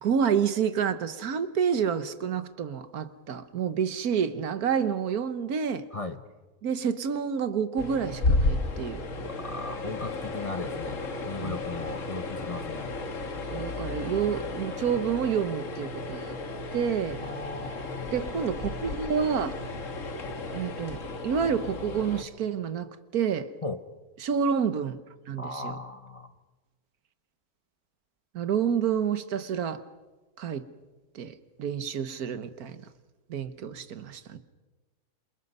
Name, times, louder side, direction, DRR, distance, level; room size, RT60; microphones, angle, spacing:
voice 1, 0.0-5.8 6.6-9.0 11.4-11.6 13.5-16.4 16.7-17.2 18.1-19.6 20.5-23.5 24.2-25.0 25.3-25.8 28.3-29.8 30.4-30.7 31.1-32.8 33.3-34.4, right 7 dB, 80° right, 12 dB, 1.6 m, -29 dB
sound 1, 7.8-22.2, left 2 dB, 60° left, 1.9 m, -33 dB
voice 2, 9.2-12.9 17.2-18.1 23.6-23.8 25.4-26.3, left 2 dB, 30° left, 9 dB, 0.9 m, -37 dB
27.5 x 27.5 x 5.5 m, 1.2 s
omnidirectional pair, 1.6 m